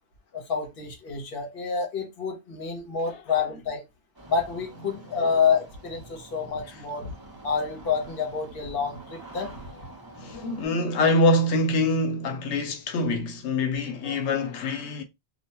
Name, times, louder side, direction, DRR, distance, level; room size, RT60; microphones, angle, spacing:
voice 1, 0.3-3.8 4.3-7.1 7.4-10.2 14.0-14.4, left 6 dB, 60° left, 1.0 m, -28 dB
Engine starting, 4.1-10.7, right 2 dB, 25° right, 0.7 m, -47 dB
voice 2, 10.2-15.0, left 1 dB, 90° left, 0.9 m, -25 dB
2.4 x 2.2 x 2.8 m
omnidirectional pair, 1.1 m